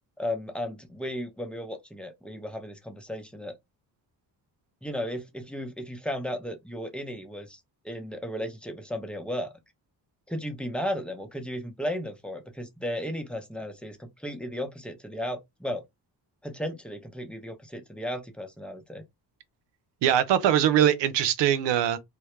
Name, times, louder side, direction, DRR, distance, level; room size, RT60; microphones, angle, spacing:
voice 1, 0.2-3.6 4.8-7.6 7.8-9.5 10.3-15.8 16.4-19.0, equal, 5° left, 0.6 m, -35 dB
voice 2, 20.0-22.0, right 10 dB, 85° right, 0.6 m, -22 dB
2.1 x 2.0 x 3.0 m
cardioid pair, 75°, 42 cm